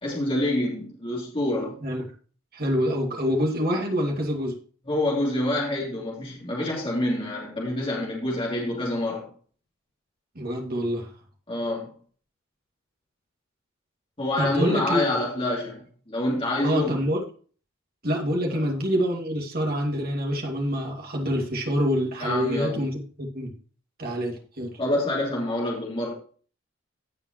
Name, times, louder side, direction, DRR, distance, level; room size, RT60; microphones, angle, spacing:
voice 1, 0.0-1.8 4.9-9.3 11.5-11.9 14.2-15.8 16.1-17.0 18.5-18.6 22.2-22.9 24.8-26.1, left 1 dB, 25° left, -4 dB, 3.0 m, -27 dB
voice 2, 2.5-4.6 10.4-11.1 14.4-15.0 16.6-17.2 18.0-23.5 24.0-24.7, equal, 45° right, 0 dB, 2.5 m, -26 dB
16.0 x 5.5 x 3.1 m, 0.42 s
head